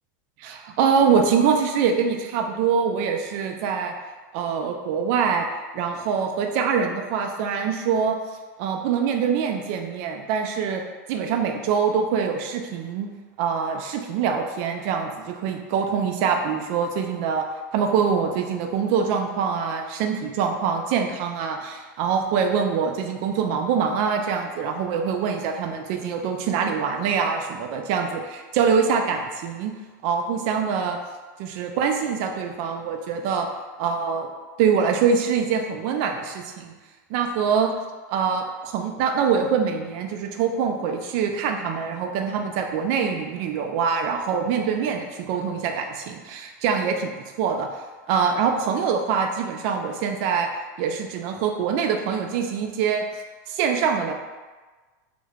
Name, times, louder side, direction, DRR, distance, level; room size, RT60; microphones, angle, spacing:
voice 1, 0.4-3.9 4.3-5.5 5.7-8.2 8.6-10.8 11.1-13.1 13.4-17.5 17.7-29.7 30.0-31.0 31.4-33.5 33.8-34.3 34.6-36.7 37.1-37.7 38.1-47.7 48.1-50.5 50.8-53.1 53.5-54.1, right 6 dB, 50° right, 4 dB, 0.3 m, -24 dB
3.1 x 2.1 x 2.3 m, 1.3 s
supercardioid pair, 150°, 10 cm